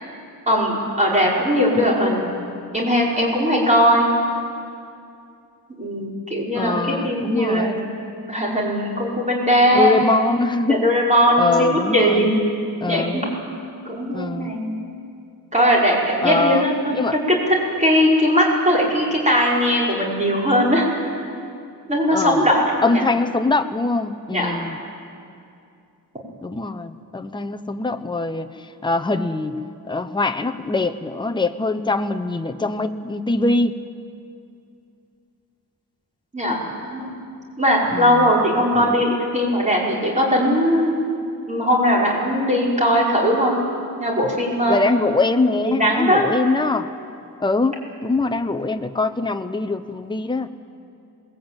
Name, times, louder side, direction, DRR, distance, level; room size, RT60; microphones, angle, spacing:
voice 1, 0.5-2.3 2.7-4.1 5.8-7.9 8.3-10.0 10.7-12.3 12.9-13.4 13.9-14.7 15.5-16.9 17.2-21.0 21.9-23.1 24.3-24.6 36.3-36.6 36.9-37.1 37.6-40.9 41.5-43.6 44.0-44.8 45.6-46.2, equal, 20° right, -4 dB, 5.4 m, -19 dB
voice 2, 1.7-2.2 6.5-7.8 9.7-10.9 11.4-12.3 12.8-13.2 14.1-14.5 16.2-16.6 16.9-17.2 22.1-22.5 22.8-24.8 26.4-28.5 28.8-29.6 29.9-33.8 37.9-38.3 38.6-39.1 44.7-46.9 47.4-50.5, left 3 dB, 10° left, 7 dB, 0.8 m, -23 dB
22.5 x 20.5 x 9.0 m, 2.5 s
wide cardioid pair, 150°, 38 cm